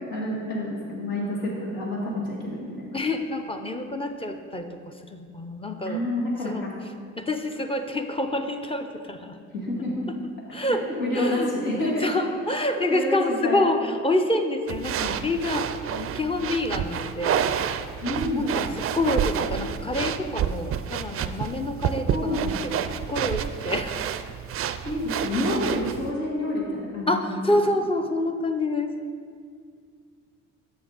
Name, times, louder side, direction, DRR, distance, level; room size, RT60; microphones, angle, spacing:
voice 1, 0.1-3.0 5.9-6.8 9.6-10.1 10.7-12.1 12.7-13.7 18.0-18.5 22.1-22.5 24.8-27.3, left 1 dB, 80° left, -5 dB, 2.0 m, -28 dB
voice 2, 2.9-6.0 6.4-6.7 7.2-9.4 10.5-10.9 11.1-11.5 11.8-17.4 18.3-22.8 23.1-24.0 27.1-28.9, left 1 dB, 15° left, 6 dB, 0.5 m, -27 dB
sound 1, 14.7-26.1, right 9 dB, 40° right, 0.4 m, -29 dB
7.9 x 5.8 x 4.0 m, 2.1 s
supercardioid pair, 70°, 34 cm